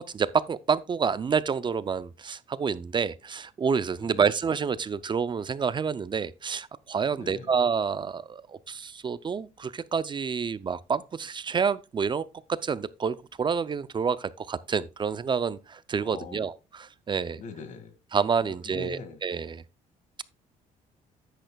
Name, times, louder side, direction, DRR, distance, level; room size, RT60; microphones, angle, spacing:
voice 1, 0.0-12.2 12.6-17.4 18.1-19.6, right 6 dB, 30° right, 0.5 m, -28 dB
voice 2, 7.1-7.5 16.0-16.5 17.4-17.9 18.4-19.2, left 5 dB, 50° left, 2.1 m, -42 dB
10.0 x 9.1 x 2.3 m
cardioid pair, 115°, 16 cm